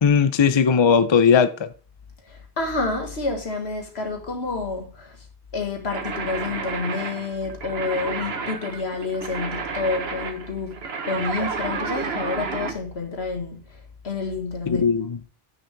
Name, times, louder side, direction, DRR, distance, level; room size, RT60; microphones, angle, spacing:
voice 1, 0.0-1.7 14.7-15.2, left 6 dB, 35° left, 0.5 m, -18 dB
voice 2, 2.3-5.2 5.5-13.6 14.0-14.9, left 3 dB, 90° left, 2.0 m, -29 dB
sound 1, 5.9-12.8, right 5 dB, 75° right, 1.3 m, -31 dB
9.7 x 6.6 x 3.4 m
omnidirectional pair, 1.0 m